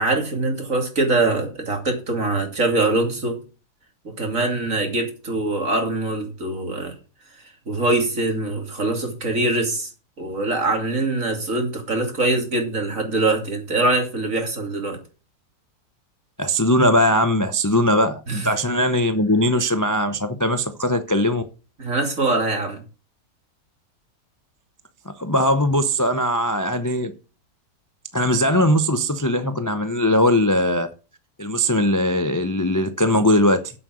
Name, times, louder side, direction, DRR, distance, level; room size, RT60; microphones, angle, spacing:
voice 1, 0.0-3.4 4.0-6.9 7.7-9.9 10.2-15.0 18.3-18.5 21.8-22.8, right 2 dB, 50° right, 3.1 m, -23 dB
voice 2, 16.4-21.4 25.1-27.1 28.1-30.9 31.4-33.7, left 1 dB, 30° left, 0.3 m, -20 dB
8.2 x 7.6 x 6.3 m
omnidirectional pair, 1.8 m